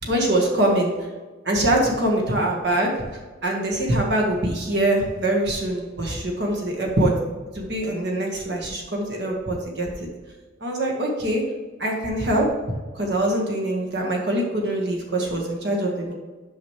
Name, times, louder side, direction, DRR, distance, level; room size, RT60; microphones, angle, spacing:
voice 1, 0.0-0.9 1.4-2.9 3.4-7.1 7.5-10.1 10.6-11.4 11.8-12.5 12.9-16.1, right 1 dB, 60° right, 0 dB, 1.6 m, -23 dB
9.7 x 6.0 x 3.3 m, 1.3 s
head